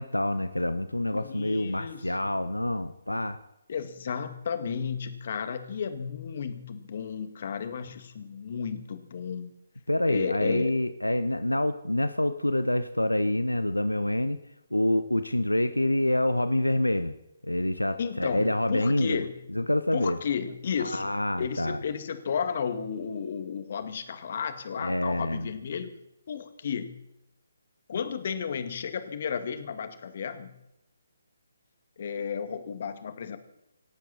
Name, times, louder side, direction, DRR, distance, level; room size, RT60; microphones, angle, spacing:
voice 1, 0.0-3.4 9.9-14.4 14.7-17.1 17.4-19.2 19.5-20.2 20.8-21.8 24.8-25.5, left 1 dB, 90° left, 12 dB, 1.1 m, -27 dB
voice 2, 1.1-2.3 3.7-9.5 10.0-10.7 18.0-19.3 19.9-21.1 21.4-25.9 26.3-27.0 27.9-30.6 32.0-33.4, left 7 dB, 45° left, 9 dB, 2.1 m, -33 dB
27.0 x 12.0 x 4.3 m, 0.87 s
figure-of-eight pair, 140°, 0 cm